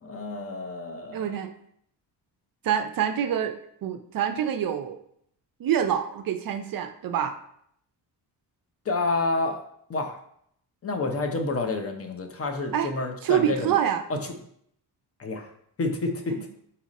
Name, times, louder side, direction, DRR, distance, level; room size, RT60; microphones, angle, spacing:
voice 1, 0.0-1.4 8.9-9.6 9.9-10.2 10.8-13.7 14.1-14.2 15.2-15.5 15.8-16.5, left 3 dB, 30° left, 4 dB, 0.6 m, -29 dB
voice 2, 1.1-1.5 2.6-3.5 3.8-5.0 5.6-7.3 12.7-12.9 13.2-14.0, right 9 dB, 50° right, 7 dB, 0.5 m, -26 dB
4.1 x 2.5 x 4.1 m, 0.69 s
cardioid pair, 90°, 44 cm